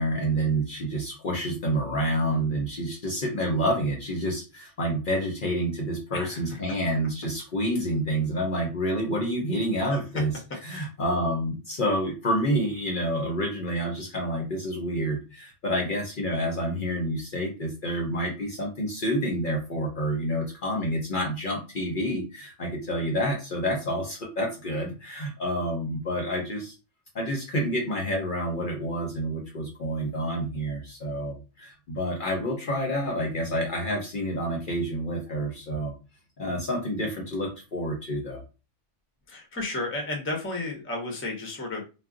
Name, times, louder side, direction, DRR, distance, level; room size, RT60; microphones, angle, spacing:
voice 1, 0.0-10.3 10.6-26.7 27.1-35.9 36.4-38.4, equal, 50° left, 0 dB, 0.7 m, -28 dB
voice 2, 39.3-41.8, left 2 dB, 15° left, 1 dB, 0.6 m, -33 dB
2.3 x 2.1 x 3.6 m, 0.31 s
omnidirectional pair, 1.2 m